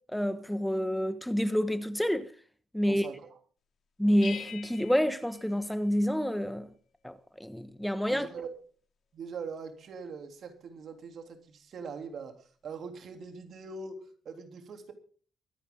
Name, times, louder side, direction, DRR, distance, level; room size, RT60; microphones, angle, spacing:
voice 1, 0.1-2.3 2.7-3.1 4.0-6.7 7.0-7.1 7.4-8.3, equal, 5° left, 1.2 m, -28 dB
voice 2, 2.8-3.4 8.1-8.5 9.1-14.9, right 5 dB, 60° right, 3.4 m, -42 dB
sound 1, 4.2-6.4, left 8 dB, 60° left, 3.2 m, -45 dB
23.5 x 9.9 x 3.9 m
cardioid pair, 90°, 0 cm